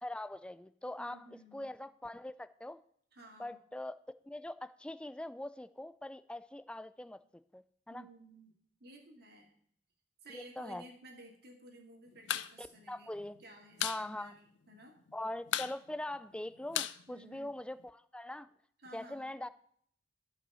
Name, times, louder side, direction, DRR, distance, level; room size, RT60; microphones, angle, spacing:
voice 1, 0.0-1.3 1.5-2.8 3.4-4.0 4.2-7.2 7.5-8.1 10.3-10.8 12.6-13.4 13.8-14.3 15.1-18.5 18.9-19.5, left 1 dB, 5° left, 14 dB, 0.3 m, -42 dB
voice 2, 1.0-1.7 3.1-3.6 7.9-8.5 8.8-9.5 10.2-13.1 13.4-14.4 14.7-15.0 17.1-17.5 18.8-19.3, right 1 dB, 60° right, 1 dB, 2.3 m, -54 dB
sound 1, 12.1-12.5 12.8-12.9 13.2-14.0 14.4-14.5 14.7-15.1 15.5-17.8, left 11 dB, 80° left, 0.5 m, -36 dB
11.5 x 5.6 x 5.5 m, 0.64 s
head